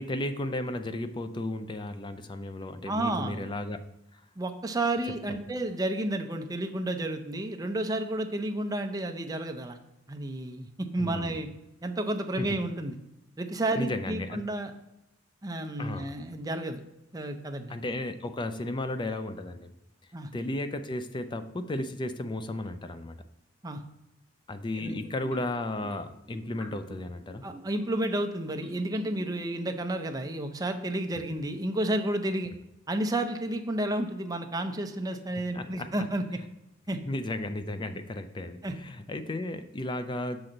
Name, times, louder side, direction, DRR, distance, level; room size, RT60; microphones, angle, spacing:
voice 1, 0.0-3.8 4.1-4.2 11.0-11.3 12.4-12.6 13.7-14.4 15.8-16.1 17.7-19.7 20.3-23.2 24.5-27.5 35.5-35.9 37.1-40.5, left 1 dB, 25° left, 10 dB, 0.4 m, -34 dB
voice 2, 2.9-3.5 4.4-9.8 10.1-11.5 11.8-13.0 13.4-14.7 15.4-16.8 17.1-17.7 20.1-20.3 23.6-23.8 24.8-25.0 27.4-32.5 32.9-36.2 36.9-37.0 38.6-38.7, right 1 dB, 20° right, 6 dB, 0.6 m, -31 dB
sound 1, 24.8-28.0 28.4-30.0, right 1 dB, 5° left, 1.5 m, -49 dB
6.3 x 6.0 x 3.8 m, 0.91 s
head